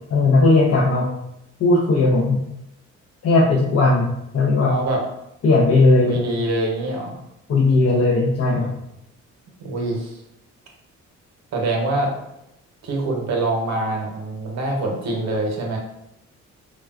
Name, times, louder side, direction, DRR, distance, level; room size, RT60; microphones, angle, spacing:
voice 1, 0.1-1.1 1.6-2.4 3.2-4.7 5.4-6.2 7.5-8.7, left 2 dB, 55° left, -3 dB, 0.6 m, -17 dB
voice 2, 4.6-5.0 6.1-7.2 9.6-10.2 11.5-12.1 12.8-15.8, right 2 dB, 60° right, 0 dB, 0.8 m, -24 dB
3.4 x 2.1 x 2.3 m, 0.84 s
cardioid pair, 90°, 30 cm